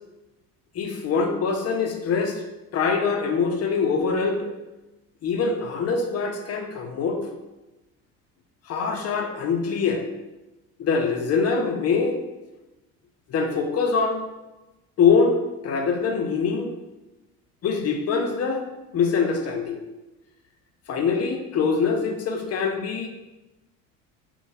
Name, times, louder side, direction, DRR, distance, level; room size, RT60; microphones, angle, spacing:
voice 1, 0.7-2.4 2.7-4.5 5.2-7.2 8.7-10.0 10.8-12.2 13.3-14.2 15.0-15.4 15.6-16.7 17.6-18.6 18.9-19.9 20.9-23.1, left 5 dB, 40° left, 4 dB, 0.6 m, -23 dB
2.7 x 2.3 x 3.8 m, 1.0 s
hypercardioid pair, 65°, 41 cm